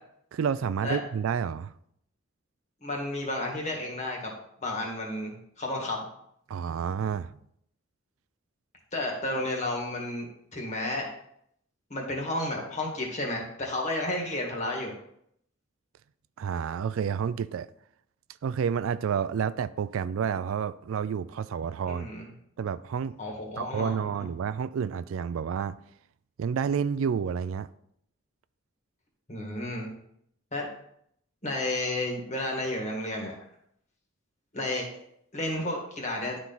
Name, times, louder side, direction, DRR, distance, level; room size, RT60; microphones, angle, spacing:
voice 1, 0.3-1.7 6.5-7.3 16.4-17.7 18.4-22.1 22.6-23.2 23.6-25.8 26.4-27.7, right 7 dB, 75° right, 0.3 m, -29 dB
voice 2, 2.8-4.3 4.6-6.0 8.9-11.1 11.9-14.9 21.9-22.3 23.2-23.9 29.3-29.9 30.5-30.7 31.4-33.4 34.5-34.9 35.3-36.4, left 1 dB, 35° left, 1.8 m, -32 dB
11.0 x 4.3 x 4.0 m
head